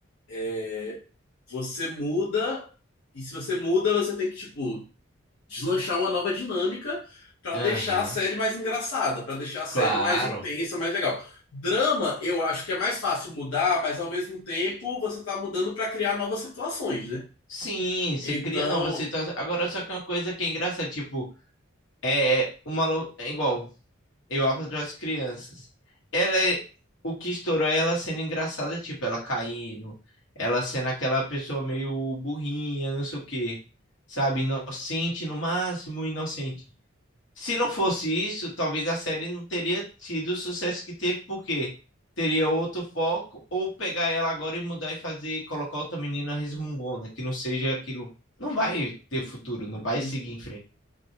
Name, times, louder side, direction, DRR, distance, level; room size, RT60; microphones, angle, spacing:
voice 1, 0.3-1.0 1.5-2.7 3.1-4.9 5.5-17.2 18.2-19.1 49.9-50.1, left 3 dB, 90° left, 0.7 m, -28 dB
voice 2, 7.5-8.1 9.7-10.4 17.5-21.3 22.0-23.7 24.3-25.6 26.1-26.6 27.0-29.9 30.4-33.6 34.1-36.5 37.4-41.7 42.2-48.1 48.4-50.6, equal, 70° left, 1.1 m, -28 dB
2.4 x 2.0 x 2.7 m
head